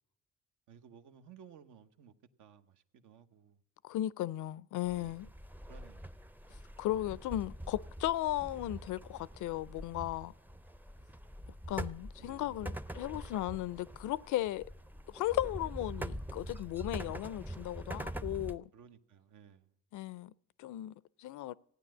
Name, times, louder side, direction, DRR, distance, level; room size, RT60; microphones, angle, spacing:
voice 1, 0.7-2.1 2.4-3.6 4.9-5.3 5.7-6.1 12.2-12.5 17.0-17.2 18.7-19.7, right 7 dB, 80° right, 0.9 m, -57 dB
voice 2, 3.8-5.3 6.8-10.3 11.7-14.7 15.1-18.7 19.9-20.3 20.6-21.5, left 14 dB, 80° left, 0.5 m, -36 dB
sound 1, 4.8-18.6, right 1 dB, 5° right, 0.4 m, -44 dB
15.0 x 9.5 x 7.7 m
cardioid pair, 90°, 30 cm